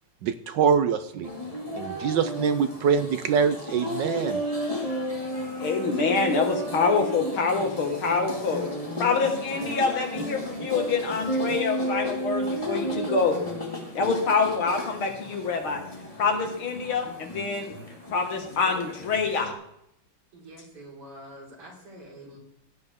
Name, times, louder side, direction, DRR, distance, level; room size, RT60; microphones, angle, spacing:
voice 1, 0.2-1.3 1.8-4.4, right 6 dB, 70° right, 10 dB, 1.1 m, -24 dB
sound 1, 1.2-19.5, equal, 15° left, 2.2 m, -33 dB
voice 2, 5.6-8.6 9.0-13.4 13.9-15.8 16.2-17.7 18.1-19.5, left 4 dB, 70° left, 3 dB, 2.6 m, -26 dB
voice 3, 20.3-22.4, right 1 dB, 90° right, -4 dB, 5.1 m, -46 dB
16.0 x 9.9 x 3.6 m, 0.78 s
omnidirectional pair, 2.4 m